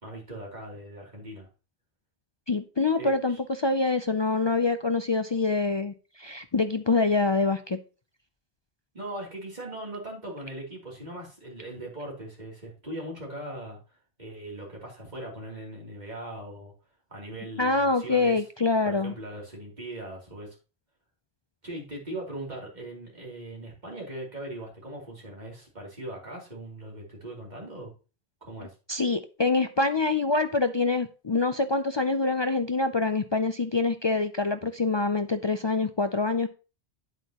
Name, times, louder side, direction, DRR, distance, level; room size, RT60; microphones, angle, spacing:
voice 1, 0.0-1.5 3.0-3.4 8.9-13.8 14.2-16.7 17.1-18.4 18.8-20.5 21.6-27.9 28.4-28.7, right 1 dB, 40° right, 3.2 m, -40 dB
voice 2, 2.5-7.8 17.6-19.1 28.9-36.5, left 3 dB, 45° left, 0.3 m, -25 dB
9.2 x 8.1 x 2.9 m
omnidirectional pair, 1.1 m